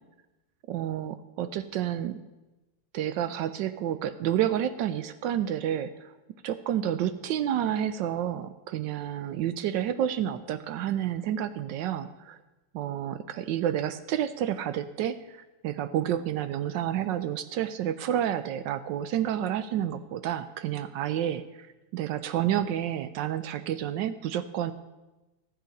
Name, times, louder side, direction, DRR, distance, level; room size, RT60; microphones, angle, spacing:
voice 1, 0.7-2.1 2.9-6.1 6.4-12.4 12.7-21.7 21.9-24.7, right 10 dB, 75° right, 12 dB, 1.0 m, -30 dB
13.0 x 7.7 x 5.2 m, 1.1 s
omnidirectional pair, 2.4 m